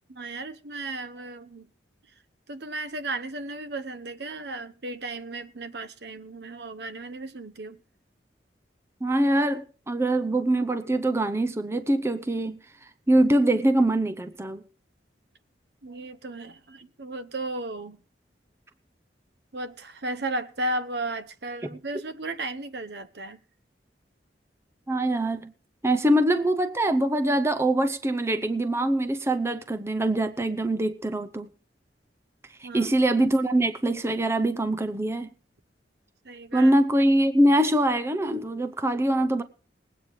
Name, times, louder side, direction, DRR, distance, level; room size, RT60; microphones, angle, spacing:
voice 1, 0.1-1.7 2.5-7.8 15.8-18.0 19.5-23.4 32.6-32.9 36.2-36.7, right 2 dB, 65° right, 1.0 m, -35 dB
voice 2, 9.0-12.6 13.1-14.6 24.9-25.5 25.8-31.5 32.6-35.3 36.5-39.4, right 1 dB, 15° right, 0.7 m, -23 dB
20.0 x 8.9 x 4.8 m
head